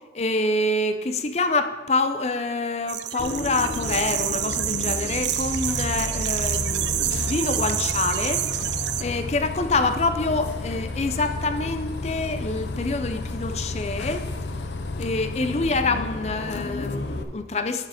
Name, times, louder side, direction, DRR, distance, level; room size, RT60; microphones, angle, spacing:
voice 1, 0.1-8.4 9.0-14.2 15.0-17.9, left 3 dB, 35° left, 9 dB, 0.5 m, -26 dB
sound 1, 2.9-9.0, right 12 dB, 85° right, 0.4 m, -28 dB
Bus, 3.2-17.2, left 2 dB, 80° left, 0.6 m, -32 dB
7.3 x 6.4 x 5.1 m, 1.3 s
head